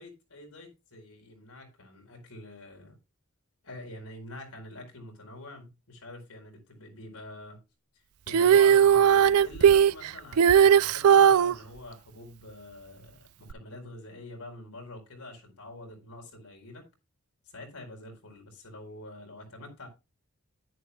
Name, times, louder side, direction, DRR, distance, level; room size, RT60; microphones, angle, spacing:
voice 1, 0.0-3.0 3.6-7.6 8.3-16.8 17.5-19.9, left 1 dB, 85° left, 4.3 m, -45 dB
Female singing, 8.3-11.5 13.5-13.6, right 8 dB, 75° right, 0.4 m, -18 dB
10.5 x 10.5 x 2.3 m
head